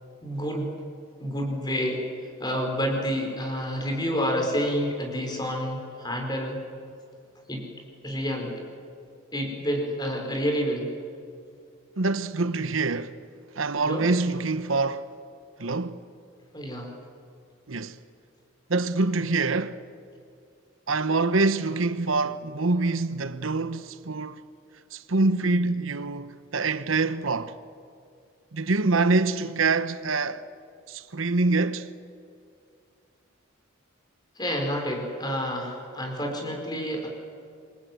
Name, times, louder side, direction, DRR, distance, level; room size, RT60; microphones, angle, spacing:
voice 1, 0.2-0.7 1.2-2.1 2.4-6.6 7.5-7.7 8.0-8.6 9.3-10.9 13.8-14.0 16.5-16.9 34.3-37.1, equal, 20° left, 5.1 m, -29 dB
voice 2, 12.0-13.2 13.6-15.1 15.6-16.0 17.7-18.0 18.7-19.8 20.9-24.4 24.9-27.6 28.5-30.4 30.9-31.9, right 3 dB, 85° right, 1.1 m, -25 dB
27.0 x 23.0 x 9.4 m
head